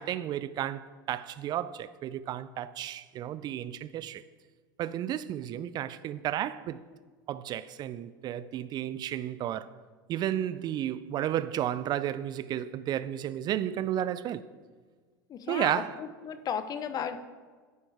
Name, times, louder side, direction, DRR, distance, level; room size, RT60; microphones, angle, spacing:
voice 1, 0.0-4.2 4.8-6.8 7.3-9.7 10.1-14.5 15.5-16.0, right 11 dB, 40° right, 0.4 m, -32 dB
voice 2, 15.3-17.2, left 8 dB, 35° left, 0.8 m, -35 dB
11.0 x 9.6 x 3.5 m
hypercardioid pair, 80°, 11 cm